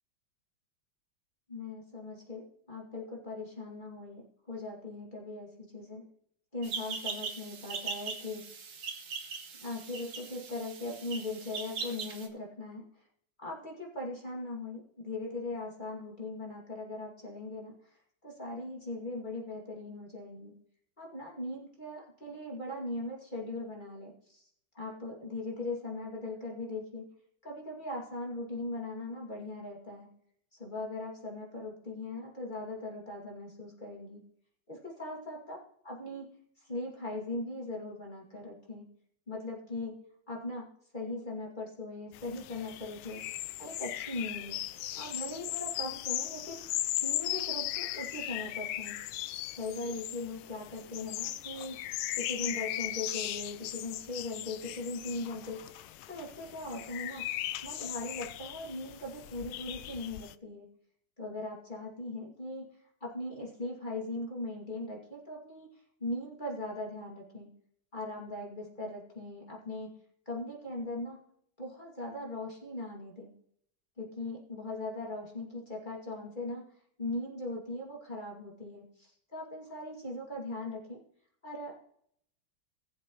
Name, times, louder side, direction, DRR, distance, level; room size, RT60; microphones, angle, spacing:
voice 1, 1.5-6.1 6.5-8.4 9.6-12.9 13.4-17.9 18.2-20.5 21.0-24.4 24.7-27.1 27.4-30.1 30.5-34.2 34.7-36.3 36.6-38.8 39.3-43.2 43.6-44.6 44.9-46.7 47.0-49.0 49.5-51.8 52.1-55.7 56.1-57.3 57.6-60.7 61.2-62.7 63.0-65.7 66.0-67.5 67.9-69.9 70.3-71.2 71.6-73.3 74.0-76.6 77.0-81.0 81.4-81.7, left 2 dB, 20° left, -3 dB, 2.5 m, -39 dB
sound 1, 6.6-12.3, right 5 dB, 60° right, 1.8 m, -40 dB
sound 2, 42.1-60.3, left 14 dB, 80° left, 1.4 m, -38 dB
19.0 x 7.5 x 3.1 m, 0.69 s
omnidirectional pair, 2.3 m